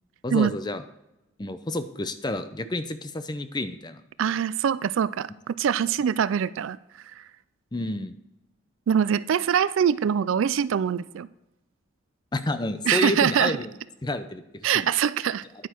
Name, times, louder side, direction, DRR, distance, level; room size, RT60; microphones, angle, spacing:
voice 1, 0.2-0.8 1.4-4.0 7.7-8.1 12.3-13.7 14.0-14.9, left 2 dB, 20° left, 11 dB, 0.6 m, -30 dB
voice 2, 4.2-6.8 8.9-11.3 12.9-13.6 14.6-15.4, right 8 dB, 70° right, 17 dB, 0.3 m, -23 dB
10.0 x 9.3 x 4.5 m, 0.94 s
head